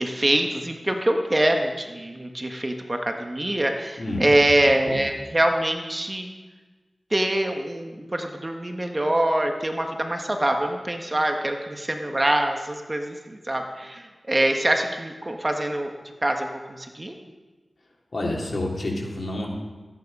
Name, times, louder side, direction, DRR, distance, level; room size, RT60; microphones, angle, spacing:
voice 1, 0.0-6.3 7.1-15.9 16.2-17.1, right 1 dB, 30° right, 4 dB, 1.5 m, -24 dB
voice 2, 4.0-4.3 4.8-5.0 18.1-19.5, left 1 dB, 60° left, -2 dB, 3.2 m, -28 dB
14.0 x 9.8 x 5.5 m, 1.3 s
cardioid pair, 50°, 0 cm